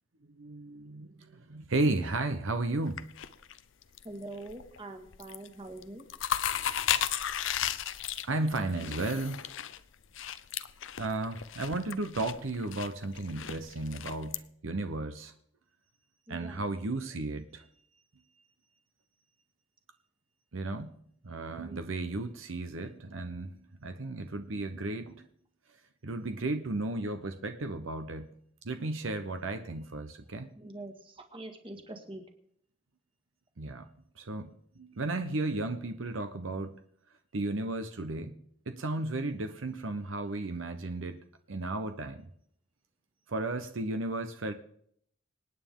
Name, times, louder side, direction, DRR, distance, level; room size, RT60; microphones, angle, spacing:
voice 1, 0.3-3.0 8.2-9.4 11.0-15.3 16.3-17.6 20.5-21.0 21.2-25.3 26.0-28.3 28.6-30.5 33.6-33.9 34.2-34.5 34.8-36.8 37.3-38.3 38.7-41.2 41.5-42.2 43.3-44.5, right 2 dB, 70° right, 9 dB, 0.8 m, -34 dB
sound 1, 2.9-4.1 4.4-4.8 5.1-5.5 5.8-14.4, left 10 dB, 65° left, 0.6 m, -34 dB
voice 2, 4.0-6.1 16.3-16.7 21.6-21.8 30.6-32.2, right 2 dB, 25° right, 5 dB, 1.8 m, -44 dB
26.0 x 9.3 x 3.7 m, 0.68 s
head